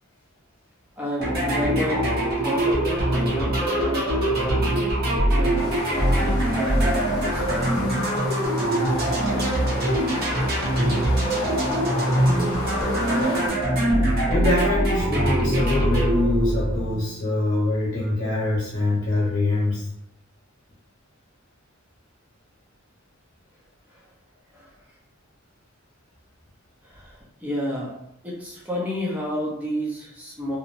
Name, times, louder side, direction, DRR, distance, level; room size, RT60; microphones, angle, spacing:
voice 1, 1.0-2.1 2.4-4.3 5.3-5.5 5.9-7.6 24.5-24.7 26.8-27.9 28.2-30.6, equal, 5° right, -4 dB, 0.6 m, -31 dB
sound 1, 1.2-17.1, right 1 dB, 45° right, 0.7 m, -23 dB
sound 2, 5.5-13.5, left 1 dB, 85° left, 0.7 m, -32 dB
voice 2, 14.3-19.9, left 2 dB, 60° left, -8 dB, 1.0 m, -24 dB
2.8 x 2.0 x 2.6 m, 0.79 s
head